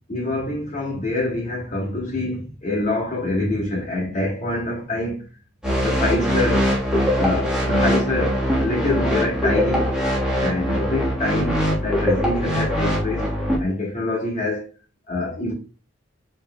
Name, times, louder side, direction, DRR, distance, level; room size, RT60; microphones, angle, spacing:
voice 1, 0.1-5.2 5.8-6.7 7.1-9.9 10.4-13.2 13.6-14.6 15.1-15.5, left 2 dB, 35° left, 1.3 m, -25 dB
sound 1, 5.6-13.6, equal, 5° right, 1.4 m, -22 dB
5.6 x 3.4 x 2.2 m
head